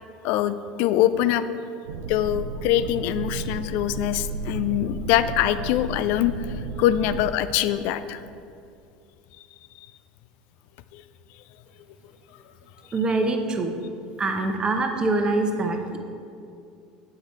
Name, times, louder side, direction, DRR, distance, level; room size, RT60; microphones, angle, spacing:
voice 1, 0.2-1.4 2.1-6.3 6.8-8.2 10.9-11.0, left 12 dB, 65° left, 13 dB, 0.3 m, -23 dB
sound 1, 1.9-7.3, right 3 dB, 90° right, 0.4 m, -33 dB
voice 2, 12.9-13.7 14.2-16.0, right 2 dB, 25° right, 4 dB, 0.8 m, -24 dB
7.9 x 4.9 x 4.3 m, 2.5 s
hypercardioid pair, 85°, 3 cm